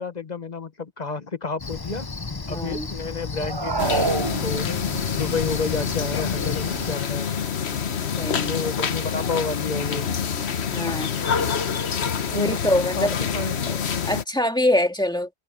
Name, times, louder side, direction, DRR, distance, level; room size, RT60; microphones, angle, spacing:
voice 1, 0.0-2.1 2.5-4.7 5.1-7.4 8.4-10.1 12.3-12.6 13.0-13.6, left 4 dB, 40° left, 1.2 m, -30 dB
Cricket, 1.6-7.0, left 3 dB, 25° left, 0.8 m, -33 dB
voice 2, 2.5-2.9 8.2-8.6 10.7-11.1 12.3-13.1 13.7-15.3, left 1 dB, 5° left, 2.0 m, -24 dB
sound 1, 3.4-5.0, right 4 dB, 25° right, 0.7 m, -26 dB
sound 2, 3.8-14.2, left 7 dB, 75° left, 1.3 m, -27 dB
omnidirectional pair, 1.1 m